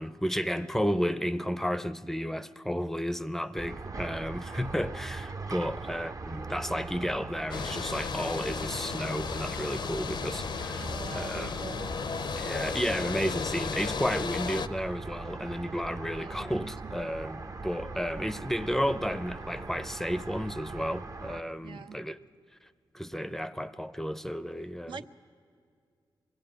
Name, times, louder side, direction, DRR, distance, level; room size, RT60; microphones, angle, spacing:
voice 1, 0.0-11.5 12.4-22.2 22.9-25.0, equal, 5° left, 0.5 m, -32 dB
sound 1, 3.6-21.4, right 3 dB, 40° right, 0.7 m, -41 dB
sound 2, 7.5-14.7, left 6 dB, 65° left, 0.6 m, -34 dB
voice 2, 10.7-11.9 16.1-17.0 21.6-22.0 24.9-25.1, right 6 dB, 80° right, 0.7 m, -44 dB
21.5 x 15.5 x 8.8 m
cardioid pair, 85°, 8 cm